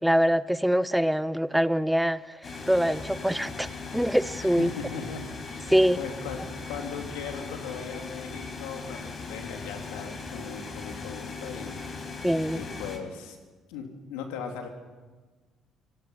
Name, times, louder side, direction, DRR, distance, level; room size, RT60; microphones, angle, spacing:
voice 1, 0.0-2.4 2.7-3.7 3.9-4.7 5.7-6.0 12.2-12.6, equal, 5° right, 16 dB, 0.9 m, -24 dB
sound 1, 2.4-13.0, left 4 dB, 45° left, 4.8 m, -38 dB
voice 2, 4.4-6.4 6.6-12.3 12.5-13.4 13.7-14.7, left 6 dB, 80° left, 4 dB, 3.1 m, -39 dB
25.0 x 18.5 x 5.8 m, 1.4 s
hypercardioid pair, 55°, 0 cm